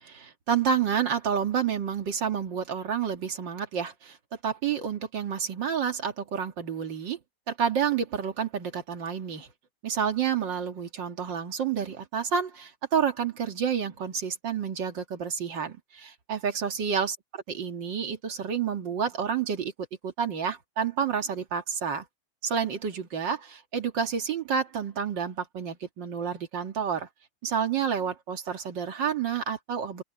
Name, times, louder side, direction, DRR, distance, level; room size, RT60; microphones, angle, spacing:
voice 1, 0.0-4.2 4.4-7.2 7.5-9.5 9.8-17.2 17.6-19.7 20.0-22.0 22.4-27.1 27.4-30.0, right 7 dB, 70° right, 2.5 m, -29 dB
open air
omnidirectional pair, 2.1 m